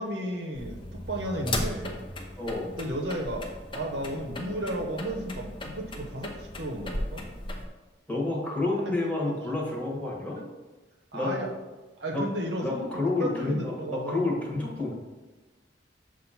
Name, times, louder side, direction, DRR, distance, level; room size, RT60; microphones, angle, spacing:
voice 1, 0.0-2.0 2.8-3.5 3.7-7.3 8.8-8.9 9.3-9.4 10.4-10.5 11.1-11.5 12.0-12.9 13.2-14.2, right 1 dB, 65° right, 1 dB, 0.8 m, -33 dB
sound 1, 0.5-7.7, left 1 dB, 30° left, 0.7 m, -36 dB
voice 2, 2.4-2.8 8.1-10.4 11.1-11.3 12.1-12.2 12.6-14.9, left 2 dB, 10° left, -4 dB, 1.3 m, -29 dB
7.1 x 2.5 x 5.7 m, 1.2 s
head